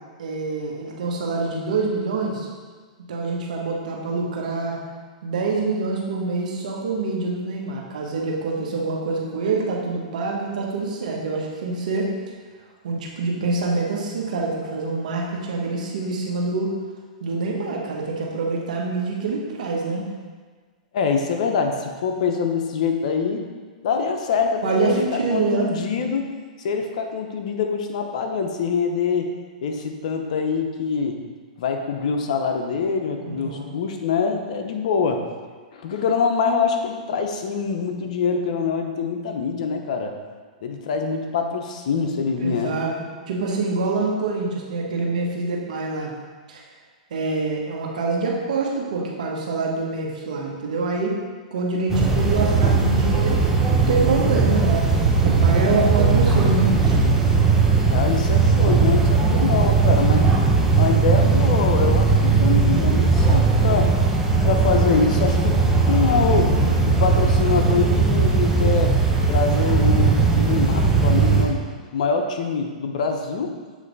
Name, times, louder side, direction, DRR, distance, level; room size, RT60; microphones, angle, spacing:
voice 1, 0.2-2.5 3.1-4.8 5.2-12.1 12.8-16.7 17.2-20.0 24.6-25.7 33.2-33.7 42.4-42.9 43.3-46.1 46.5-46.6 47.1-51.2 51.5-57.0, right 3 dB, 75° right, -1 dB, 1.2 m, -25 dB
voice 2, 20.9-23.4 23.8-26.3 26.6-29.3 29.6-31.2 31.6-35.2 35.7-40.1 40.6-42.8 57.9-60.3 60.8-63.9 64.4-65.6 65.9-66.6 66.9-69.0 69.3-71.6 71.9-73.5, left 5 dB, 65° left, 4 dB, 0.7 m, -24 dB
sound 1, 51.9-71.5, right 4 dB, 10° right, 0.8 m, -18 dB
7.3 x 3.2 x 4.0 m, 1.5 s
hypercardioid pair, 125°, 4 cm